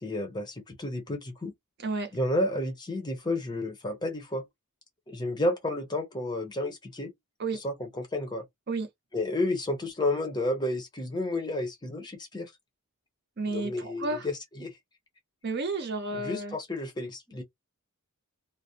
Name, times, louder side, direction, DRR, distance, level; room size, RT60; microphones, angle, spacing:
voice 1, 0.0-1.5 2.1-4.4 5.1-7.1 7.6-8.4 9.1-12.5 13.5-14.3 14.6-14.7 16.1-17.4, left 1 dB, 20° left, 0.6 m, -31 dB
voice 2, 1.8-2.1 7.4-7.6 8.7-8.9 13.4-14.3 15.4-16.5, right 3 dB, 50° right, 0.7 m, -31 dB
2.4 x 2.0 x 2.7 m
head